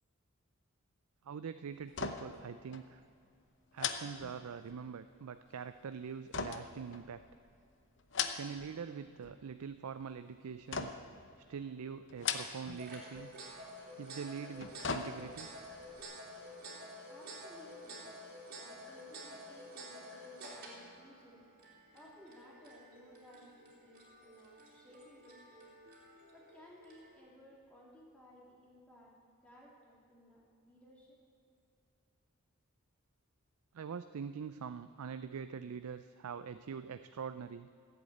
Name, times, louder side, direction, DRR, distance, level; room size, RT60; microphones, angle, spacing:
voice 1, 1.2-3.0 3.7-7.2 8.4-10.9 11.5-13.3 14.0-15.5 33.7-37.7, right 6 dB, 90° right, 11 dB, 0.4 m, -44 dB
sound 1, 1.9-2.5 2.7-2.9 3.8-4.9 6.3-7.4 8.0-8.7 9.1-9.6 10.7-11.2 12.1-12.8 13.1-13.3 14.4-15.5 15.9-16.0, left 6 dB, 55° left, 0.8 m, -39 dB
sound 2, 12.4-27.2, equal, 45° right, 3.0 m, -51 dB
voice 2, 17.1-18.0 18.5-21.4 21.9-25.7 26.3-29.1 29.4-31.2, equal, 5° left, -4 dB, 2.4 m, -59 dB
15.0 x 8.1 x 8.4 m, 2.5 s
head